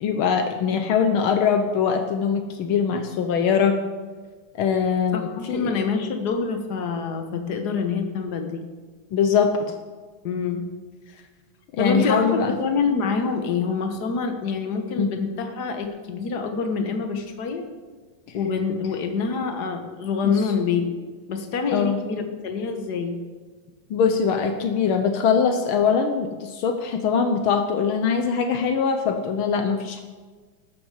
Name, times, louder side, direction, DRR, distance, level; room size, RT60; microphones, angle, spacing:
voice 1, 0.0-3.8 4.5-5.7 9.1-9.6 11.7-12.5 15.0-15.1 20.2-20.3 21.7-22.0 23.9-30.0, left 6 dB, 85° left, 7 dB, 1.1 m, -22 dB
voice 2, 5.1-8.6 10.2-10.6 11.8-17.6 18.3-21.0 21.3-23.2, left 5 dB, 50° left, 6 dB, 1.3 m, -26 dB
13.5 x 12.5 x 5.0 m, 1.4 s
omnidirectional pair, 3.5 m